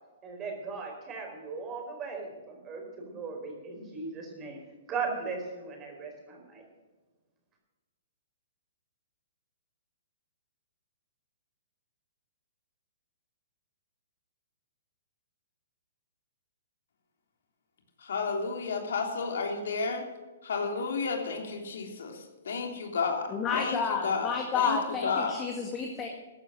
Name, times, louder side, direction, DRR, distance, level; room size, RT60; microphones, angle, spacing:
voice 1, 0.2-4.6 4.9-6.6, right 4 dB, 20° right, 2 dB, 4.5 m, -38 dB
voice 2, 18.0-20.0 20.4-24.8 25.0-25.4, left 4 dB, 75° left, 3 dB, 3.3 m, -32 dB
voice 3, 23.3-26.1, left 6 dB, 20° left, 1 dB, 2.1 m, -30 dB
14.5 x 11.0 x 6.3 m, 1.3 s
hypercardioid pair, 145°, 0 cm